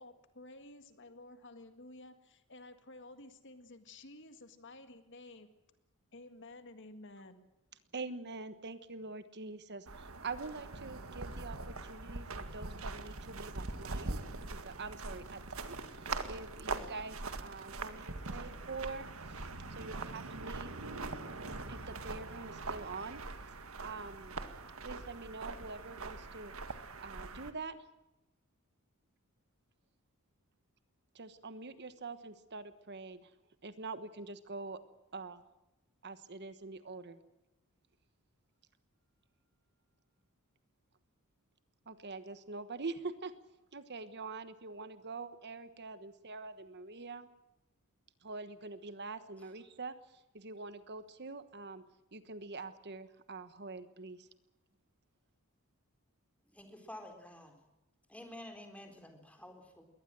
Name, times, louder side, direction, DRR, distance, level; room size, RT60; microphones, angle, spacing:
voice 1, 0.0-5.5 6.1-7.5, left 2 dB, 55° left, 9 dB, 1.9 m, -53 dB
voice 2, 7.9-14.2 14.5-15.4 15.7-19.4 19.7-20.8 21.7-23.2 23.8-24.4 24.8-27.8 31.1-33.3 33.6-34.8 35.1-35.4 36.0-37.2 41.9-43.3 43.7-47.3 48.2-49.9 50.3-51.8 52.1-54.3, right 3 dB, 50° right, 12 dB, 1.3 m, -45 dB
sound 1, 9.9-27.5, right 3 dB, 70° right, 1.9 m, -42 dB
voice 3, 56.5-57.6 58.1-59.9, left 1 dB, 5° left, 5 dB, 4.0 m, -50 dB
22.0 x 18.5 x 7.7 m, 0.95 s
head